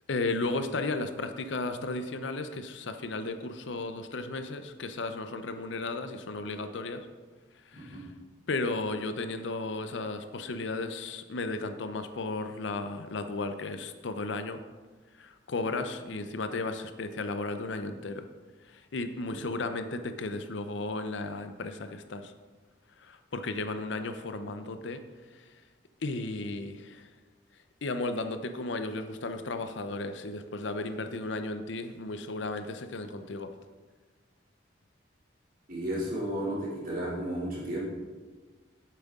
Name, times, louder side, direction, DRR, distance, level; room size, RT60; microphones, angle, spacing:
voice 1, 0.1-7.1 7.7-8.1 8.5-14.6 15.2-18.3 18.7-22.3 23.0-25.0 26.0-27.1 27.8-33.5, left 3 dB, 75° left, 8 dB, 0.6 m, -34 dB
voice 2, 35.7-37.8, right 1 dB, 45° right, -6 dB, 2.8 m, -33 dB
9.1 x 7.6 x 3.6 m, 1.4 s
head